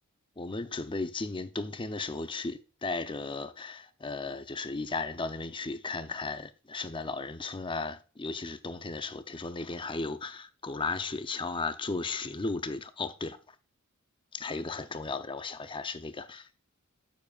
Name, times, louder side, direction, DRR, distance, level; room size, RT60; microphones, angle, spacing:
voice 1, 0.4-13.4 14.3-16.5, left 3 dB, 25° left, 0.6 m, -35 dB
9.3 x 7.4 x 2.4 m
head